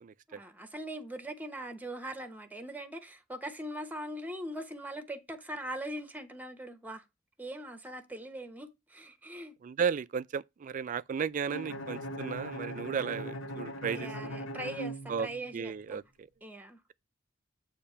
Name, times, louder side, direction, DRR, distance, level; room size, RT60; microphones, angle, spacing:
voice 1, 0.3-7.0 7.4-9.6 13.9-16.0 16.4-16.8, right 1 dB, 10° right, 1.0 m, -41 dB
voice 2, 9.6-14.3 15.1-15.3 15.5-16.3, right 6 dB, 40° right, 0.3 m, -34 dB
Bowed string instrument, 11.5-15.6, equal, 90° left, 1.2 m, -40 dB
8.5 x 2.9 x 5.5 m
head